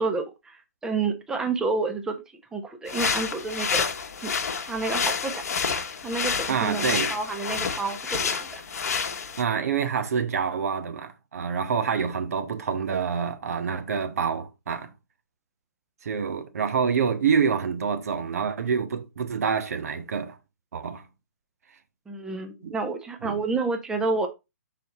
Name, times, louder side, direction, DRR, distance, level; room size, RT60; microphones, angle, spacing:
voice 1, 0.0-2.2 2.5-3.9 4.2-4.3 4.6-5.3 6.0-8.6 22.1-24.3, right 3 dB, 5° right, 0.8 m, -29 dB
sound 1, 2.9-9.4, left 6 dB, 65° left, 1.1 m, -29 dB
voice 2, 6.5-7.1 9.4-14.9 16.0-20.4 20.7-21.0 22.6-22.8 23.2-23.4, right 6 dB, 65° right, 1.0 m, -27 dB
5.6 x 4.2 x 4.1 m
hypercardioid pair, 135°, 9 cm